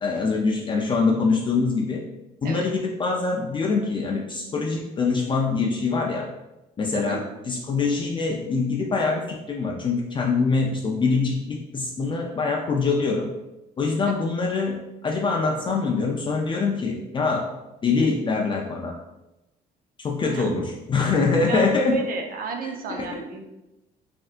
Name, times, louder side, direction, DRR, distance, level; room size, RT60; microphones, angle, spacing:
voice 1, 0.0-2.0 2.4-6.3 6.8-13.3 13.8-17.5 17.8-18.9 20.0-20.6 20.9-22.0 22.9-23.1, left 4 dB, 30° left, -1 dB, 0.4 m, -24 dB
voice 2, 20.3-20.6 21.5-23.5, right 4 dB, 60° right, 3 dB, 0.5 m, -32 dB
3.3 x 2.6 x 2.4 m, 0.95 s
cardioid pair, 110°, 17 cm